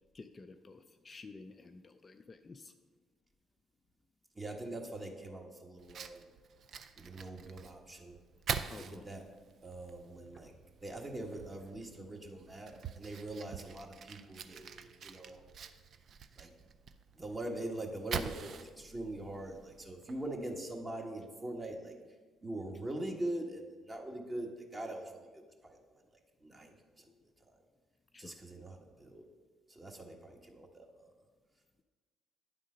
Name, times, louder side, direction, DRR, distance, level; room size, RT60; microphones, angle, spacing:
voice 1, 0.1-2.7 8.7-9.1 27.1-27.2 28.1-28.4 30.4-30.6, left 3 dB, 35° left, 7 dB, 0.4 m, -52 dB
voice 2, 4.3-6.2 7.0-8.2 8.8-9.2 9.6-10.5 10.8-15.4 16.4-16.5 17.1-21.9 22.4-25.0 25.3-26.0 26.4-27.1 28.2-29.2 29.7-31.1, right 1 dB, 25° right, 2 dB, 1.4 m, -43 dB
Fire, 5.8-20.4, right 7 dB, 60° right, 0.4 m, -45 dB
9.3 x 3.7 x 5.1 m, 1.4 s
hypercardioid pair, 55°, 0 cm